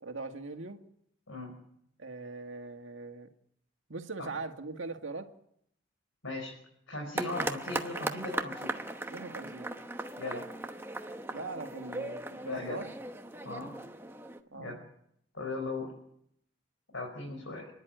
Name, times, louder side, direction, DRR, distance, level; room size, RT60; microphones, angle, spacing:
voice 1, 0.0-0.8 2.0-3.3 3.9-5.3 9.1-9.8 11.3-12.9 14.5-14.8 17.3-17.4, right 3 dB, 80° right, 5 dB, 1.9 m, -41 dB
voice 2, 6.9-8.7 10.2-10.5 12.4-12.9 13.4-13.7 14.5-14.8 15.3-15.9 16.9-17.7, left 2 dB, 85° left, 0 dB, 5.3 m, -38 dB
sound 1, 7.2-14.4, right 2 dB, 10° right, 1.0 m, -38 dB
29.0 x 11.0 x 9.3 m, 0.73 s
head